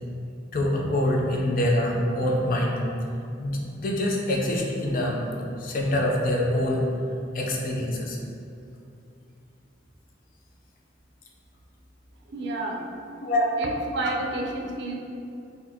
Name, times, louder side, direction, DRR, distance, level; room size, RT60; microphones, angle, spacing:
voice 1, 0.5-2.8 3.4-5.2 5.6-6.8 7.3-8.2 13.2-13.5, left 1 dB, 50° left, -1 dB, 0.5 m, -25 dB
voice 2, 12.3-12.9 13.6-15.0, right 2 dB, 65° right, 1 dB, 0.4 m, -30 dB
4.1 x 2.7 x 2.8 m, 2.6 s
head